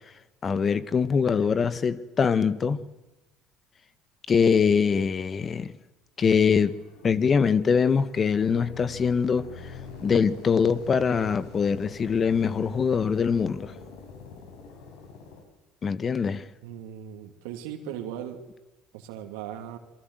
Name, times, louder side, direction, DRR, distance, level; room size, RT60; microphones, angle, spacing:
voice 1, 0.4-2.8 4.3-5.7 6.2-6.8 7.0-9.7 10.0-13.7 15.8-16.5, left 6 dB, 40° left, 1.6 m, -23 dB
sound 1, 6.4-15.4, left 4 dB, 75° left, 5.6 m, -45 dB
voice 2, 16.6-18.4 18.9-19.8, right 10 dB, 75° right, 2.5 m, -38 dB
27.5 x 23.5 x 8.1 m
hypercardioid pair, 60°, 0 cm